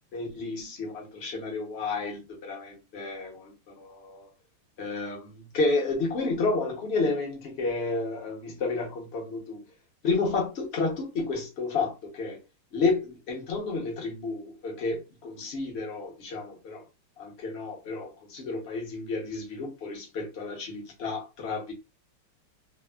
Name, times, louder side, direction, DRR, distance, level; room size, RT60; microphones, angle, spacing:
voice 1, 0.1-4.3 4.8-9.6 10.0-12.4 12.7-16.8 17.2-21.7, left 3 dB, 50° left, 0.7 m, -31 dB
3.4 x 2.0 x 2.3 m
omnidirectional pair, 2.2 m